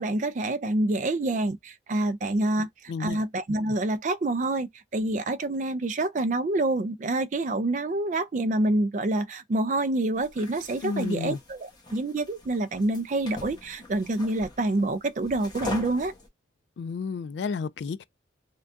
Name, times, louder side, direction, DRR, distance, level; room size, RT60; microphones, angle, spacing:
voice 1, 0.0-2.7 3.0-16.1, right 2 dB, 40° right, 0.4 m, -27 dB
voice 2, 2.6-3.2 10.8-11.4 16.8-18.0, left 5 dB, 70° left, 0.3 m, -32 dB
sound 1, 10.2-16.3, left 3 dB, 25° left, 1.0 m, -42 dB
3.5 x 2.2 x 2.5 m
head